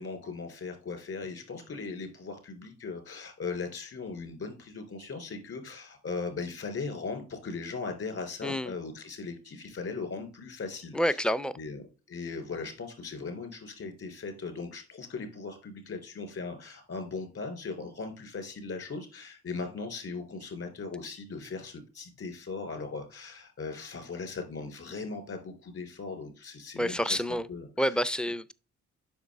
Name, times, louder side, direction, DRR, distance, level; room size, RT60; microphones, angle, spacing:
voice 1, 0.0-11.2 11.6-28.0, left 4 dB, 50° left, 3.3 m, -38 dB
voice 2, 8.4-8.7 10.9-11.5 26.8-27.5 27.8-28.5, equal, 5° left, 0.4 m, -28 dB
8.1 x 5.9 x 3.5 m
cardioid pair, 90°, 30 cm